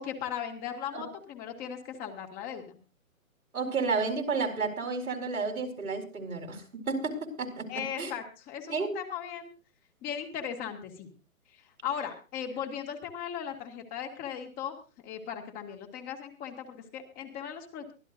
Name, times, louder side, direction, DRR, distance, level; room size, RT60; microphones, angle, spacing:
voice 1, 0.0-2.8 7.7-9.5 10.0-11.1 11.5-14.8 15.0-17.9, left 8 dB, 20° left, 4 dB, 2.0 m, -38 dB
voice 2, 3.5-7.7 8.0-8.1 8.7-8.9, right 4 dB, 85° right, 3 dB, 4.4 m, -31 dB
23.5 x 13.0 x 2.6 m, 0.34 s
hypercardioid pair, 140°, 42 cm